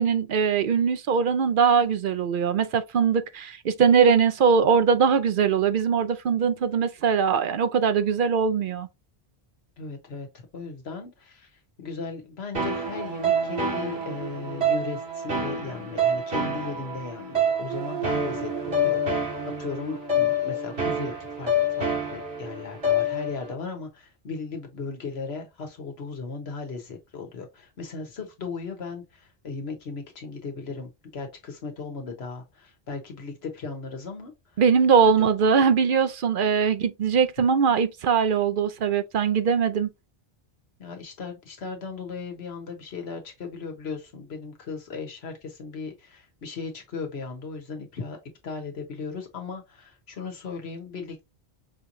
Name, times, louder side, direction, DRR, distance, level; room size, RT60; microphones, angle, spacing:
voice 1, 0.0-8.9 34.6-39.9, right 6 dB, 60° right, 0.7 m, -21 dB
voice 2, 9.8-10.3 10.5-11.5 11.8-34.6 35.0-35.3 40.8-48.2 48.4-51.3, left 4 dB, 85° left, 1.4 m, -37 dB
sound 1, 12.5-23.5, equal, 80° right, 2.1 m, -27 dB
5.5 x 3.0 x 2.6 m
omnidirectional pair, 1.0 m